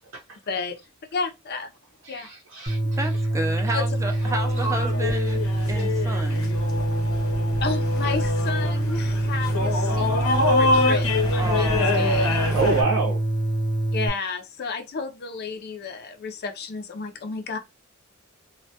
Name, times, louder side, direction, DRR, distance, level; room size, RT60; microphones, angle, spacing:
voice 1, 0.5-0.8 1.1-1.7 2.1-2.3 3.7-3.8 7.6-12.4 13.9-17.6, left 4 dB, 50° left, 0.4 m, -32 dB
voice 2, 2.0-3.1 4.9-5.1 5.8-5.9 12.5-13.2, right 4 dB, 65° right, 0.6 m, -27 dB
sound 1, 2.7-14.1, right 1 dB, 35° right, 0.7 m, -25 dB
voice 3, 3.0-5.4 5.7-6.5 11.4-12.8, right 2 dB, 15° right, 0.4 m, -32 dB
sound 2, 4.0-12.8, left 2 dB, 85° left, 0.9 m, -26 dB
2.1 x 2.1 x 2.7 m
head